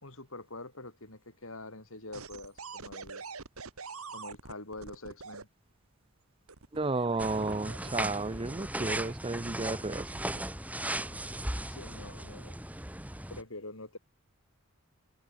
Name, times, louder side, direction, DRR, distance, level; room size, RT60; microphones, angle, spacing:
voice 1, 0.0-3.2 4.1-5.5 11.0-11.4 11.7-12.6 13.3-14.0, left 2 dB, 70° left, 5.7 m, -45 dB
sound 1, 2.1-5.4 6.5-8.1 8.8-9.1, right 4 dB, 80° right, 2.1 m, -45 dB
voice 2, 6.7-10.1 10.3-10.4, right 3 dB, 25° right, 0.6 m, -32 dB
sound 2, 7.2-13.4, right 1 dB, 5° right, 5.1 m, -37 dB
head